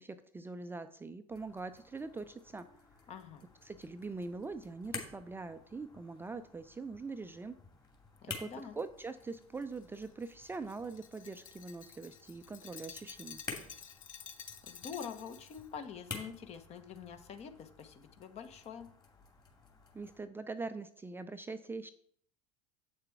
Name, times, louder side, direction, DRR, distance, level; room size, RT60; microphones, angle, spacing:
voice 1, 0.0-2.7 3.6-7.5 8.3-13.4 19.9-21.9, right 3 dB, 10° right, 9 dB, 0.5 m, -43 dB
sound 1, 1.3-20.2, left 4 dB, 25° left, 2.5 m, -51 dB
voice 2, 3.1-3.5 8.2-8.8 14.7-18.9, left 7 dB, 40° left, 9 dB, 1.1 m, -46 dB
Glass, 9.3-15.7, left 7 dB, 75° left, 0.9 m, -51 dB
8.1 x 6.6 x 4.6 m, 0.63 s
figure-of-eight pair, 70°, 17 cm